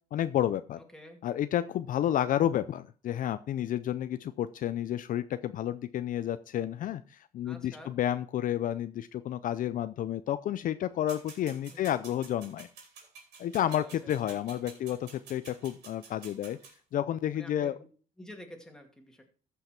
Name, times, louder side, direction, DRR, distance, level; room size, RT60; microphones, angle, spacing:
voice 1, 0.1-0.8 1.2-12.7 13.4-16.6 16.9-17.8, left 11 dB, 55° left, 12 dB, 0.5 m, -31 dB
voice 2, 0.8-1.2 7.4-8.0 11.7-12.1 13.7-14.4 14.7-14.8 17.3-17.9 18.2-19.2, equal, 5° left, 3 dB, 2.3 m, -50 dB
sound 1, 11.1-16.7, right 5 dB, 80° right, 3.8 m, -50 dB
14.0 x 5.7 x 4.4 m, 0.40 s
cardioid pair, 110°, 17 cm